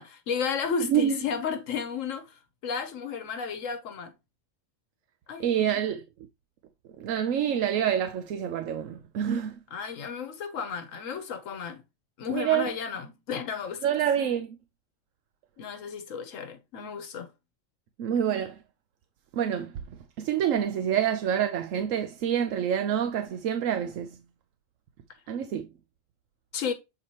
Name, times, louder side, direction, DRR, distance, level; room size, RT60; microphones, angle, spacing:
voice 1, 0.0-4.1 5.3-5.8 9.7-11.8 12.2-13.9 15.6-17.3 26.5-26.7, left 6 dB, 80° left, 1.2 m, -33 dB
voice 2, 5.4-6.0 7.0-9.6 12.3-12.7 13.8-14.6 18.0-18.6 19.3-19.7 20.2-24.2 25.3-25.7, right 9 dB, 90° right, 1.0 m, -27 dB
7.5 x 4.2 x 3.0 m
omnidirectional pair, 1.3 m